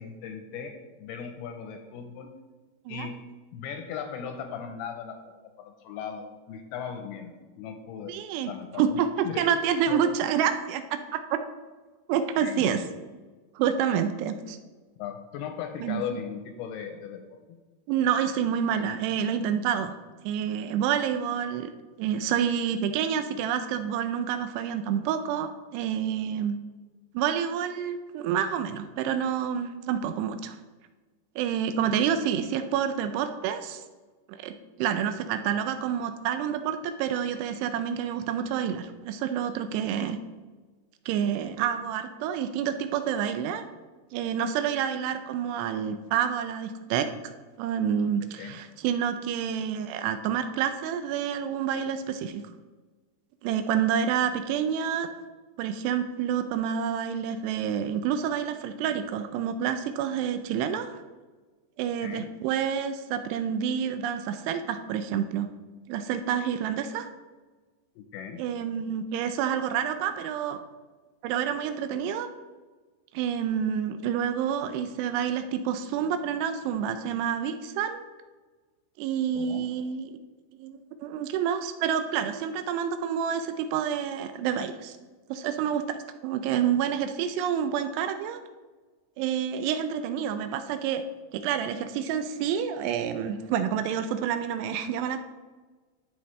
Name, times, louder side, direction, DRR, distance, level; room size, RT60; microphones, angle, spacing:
voice 1, 0.0-2.4 2.9-8.1 8.4-9.0 9.2-9.5 9.9-10.1 12.4-12.7 15.0-17.6 48.2-48.6 62.0-62.3 68.0-68.4 79.3-79.7, left 7 dB, 80° left, 5 dB, 2.4 m, -38 dB
voice 2, 8.1-11.4 12.1-12.8 13.6-14.6 15.8-16.2 17.9-19.9 20.2-21.7 22.0-26.6 27.1-30.6 31.4-33.8 34.3-34.5 34.8-40.2 41.1-43.7 44.1-47.1 47.6-52.4 53.4-55.1 55.6-61.0 61.8-65.5 65.9-67.1 68.4-70.6 71.2-72.3 73.1-78.0 79.0-80.1 80.6-85.0 85.3-86.0 86.2-88.4 89.2-91.0 91.3-95.2, right 8 dB, 85° right, 9 dB, 2.6 m, -28 dB
12.0 x 5.6 x 3.2 m, 1.3 s
omnidirectional pair, 4.9 m